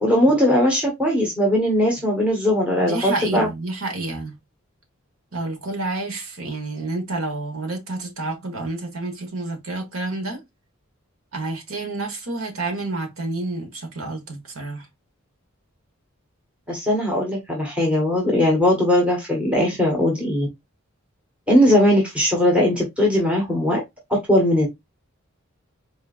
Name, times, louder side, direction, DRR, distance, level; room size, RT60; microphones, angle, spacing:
voice 1, 0.0-3.5 16.7-20.5 21.5-23.8 24.1-24.7, left 1 dB, 5° right, 1.4 m, -19 dB
voice 2, 2.8-4.3 5.3-10.4 11.3-14.8, right 2 dB, 80° right, 1.5 m, -29 dB
4.2 x 3.6 x 2.5 m
head